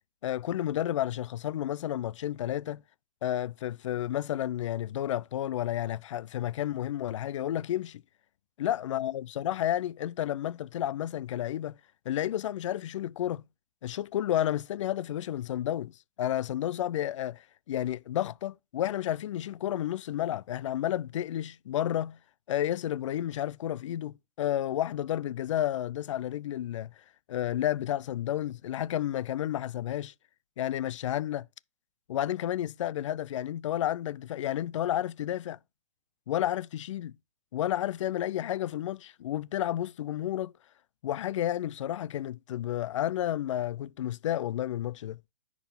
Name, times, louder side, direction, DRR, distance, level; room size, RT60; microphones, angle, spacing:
voice 1, 0.2-2.8 3.2-8.0 8.6-11.7 12.1-13.4 13.8-15.9 16.2-22.2 22.5-26.9 27.3-30.1 30.6-31.5 32.1-35.6 36.3-37.2 37.5-40.5 41.0-45.2, left 12 dB, 65° left, 0.4 m, -31 dB
10.0 x 4.7 x 3.5 m
hypercardioid pair, 120°, 17 cm